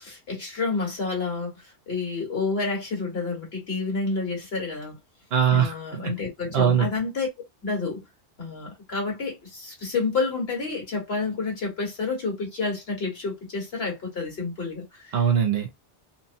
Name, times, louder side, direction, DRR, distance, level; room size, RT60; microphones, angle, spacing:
voice 1, 0.0-5.0 5.5-7.3 7.6-8.0 8.4-15.2, left 4 dB, 60° left, 1.6 m, -29 dB
voice 2, 5.3-6.2 6.5-6.9 15.1-15.8, right 8 dB, 65° right, 0.8 m, -22 dB
3.0 x 2.0 x 2.6 m
omnidirectional pair, 1.2 m